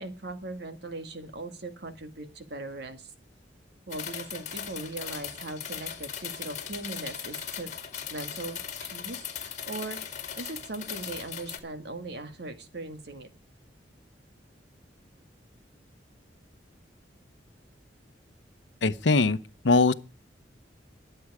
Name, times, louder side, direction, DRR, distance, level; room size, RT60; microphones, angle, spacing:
voice 1, 0.0-3.1 3.9-7.7 8.1-13.3, right 2 dB, 65° right, 1.8 m, -39 dB
sound 1, 3.9-11.6, left 8 dB, 45° left, 2.1 m, -38 dB
voice 2, 18.8-19.4 19.6-19.9, left 3 dB, 85° left, 0.8 m, -21 dB
21.5 x 7.8 x 4.8 m
head